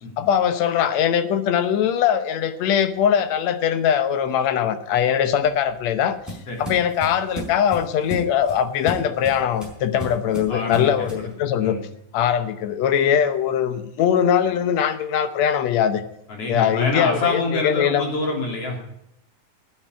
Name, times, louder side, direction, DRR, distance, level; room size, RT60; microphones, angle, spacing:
voice 1, 0.2-6.2 6.6-11.8 12.1-16.0 16.5-18.0, left 9 dB, 70° left, 11 dB, 2.0 m, -21 dB
sound 1, 5.3-11.3, equal, ahead, 4.5 m, -35 dB
voice 2, 10.5-11.3 11.6-11.8 16.3-18.9, left 2 dB, 50° left, 1 dB, 4.1 m, -26 dB
9.6 x 9.0 x 9.4 m, 0.80 s
omnidirectional pair, 3.6 m